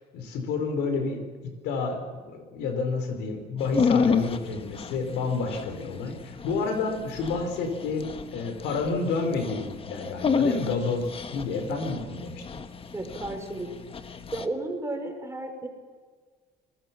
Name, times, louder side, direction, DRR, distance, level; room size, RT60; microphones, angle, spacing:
voice 1, 0.1-12.6, left 4 dB, 90° left, 6 dB, 4.8 m, -30 dB
Dog, 3.6-14.5, left 5 dB, 35° left, 1.4 m, -31 dB
voice 2, 12.9-13.7 14.3-15.7, right 2 dB, 15° right, 4 dB, 5.2 m, -33 dB
27.0 x 21.0 x 6.1 m, 1.5 s
cardioid pair, 110°, 17 cm